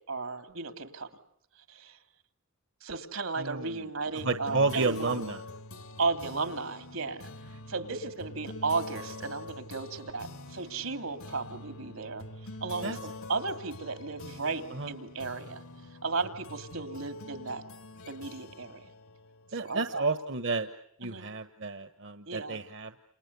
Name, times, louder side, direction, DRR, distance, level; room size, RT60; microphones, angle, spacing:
voice 1, 0.1-1.1 1.7-2.0 2.8-5.2 6.0-7.2 7.7-12.2 12.6-15.6 16.0-17.6 18.1-18.8 19.5-20.0 21.0-21.3 22.3-22.6, right 4 dB, 80° right, 8 dB, 2.9 m, -34 dB
voice 2, 3.4-3.8 4.2-5.4 12.8-13.0 14.7-14.9 19.5-20.7 21.0-23.0, right 3 dB, 60° right, 9 dB, 1.2 m, -31 dB
sound 1, 4.2-20.1, left 2 dB, 85° left, 2.2 m, -45 dB
29.5 x 29.0 x 6.9 m, 0.73 s
head